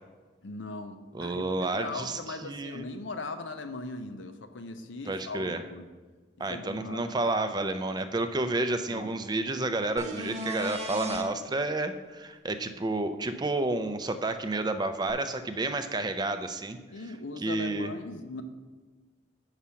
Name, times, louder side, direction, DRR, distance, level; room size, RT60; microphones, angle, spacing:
voice 1, 0.4-1.5 1.7-5.9 6.5-7.0 8.9-9.1 16.9-18.4, left 3 dB, 90° left, 8 dB, 0.7 m, -39 dB
voice 2, 1.1-2.9 5.1-5.6 6.4-16.8 17.4-17.9, right 2 dB, 20° right, 9 dB, 0.4 m, -30 dB
sound 1, 10.0-11.2 15.1-15.2, equal, 40° right, 0.9 m, -35 dB
7.0 x 4.9 x 5.7 m, 1.3 s
head